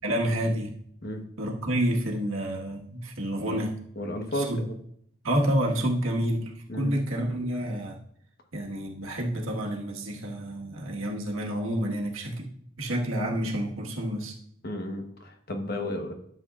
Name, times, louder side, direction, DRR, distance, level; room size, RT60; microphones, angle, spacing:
voice 1, 0.0-0.7 1.4-3.7 4.3-4.6 5.2-8.0 8.5-12.5 12.8-14.3, right 1 dB, 80° right, 0 dB, 1.6 m, -29 dB
voice 2, 4.0-4.7 6.7-6.9 14.6-16.1, left 1 dB, 50° left, 4 dB, 1.1 m, -33 dB
12.0 x 7.0 x 2.4 m, 0.69 s
head